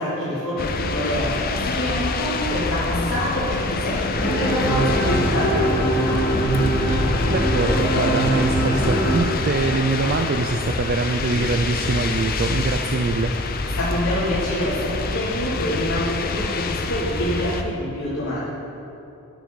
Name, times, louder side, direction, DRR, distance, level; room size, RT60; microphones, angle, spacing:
voice 1, 0.0-6.2 13.8-18.4, equal, 80° left, -12 dB, 2.8 m, -26 dB
sound 1, 0.6-17.6, left 3 dB, 40° left, 0.5 m, -26 dB
sound 2, 4.1-9.2, right 1 dB, 25° left, 2.1 m, -22 dB
voice 2, 7.3-13.3, right 3 dB, 40° right, 5 dB, 0.4 m, -24 dB
11.5 x 9.3 x 4.1 m, 2.8 s
head